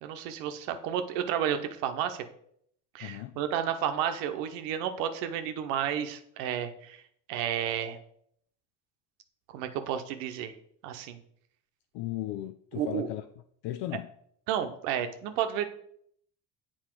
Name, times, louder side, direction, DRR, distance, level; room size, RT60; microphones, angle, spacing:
voice 1, 0.0-2.2 2.9-7.0 7.3-8.0 9.5-10.5 10.8-11.2 12.7-13.1 14.5-15.7, right 9 dB, 80° right, 8 dB, 0.9 m, -31 dB
voice 2, 3.0-3.4 11.9-13.2 13.6-14.1, left 14 dB, 65° left, 10 dB, 0.6 m, -36 dB
7.7 x 4.4 x 4.5 m, 0.67 s
hypercardioid pair, 55°, 47 cm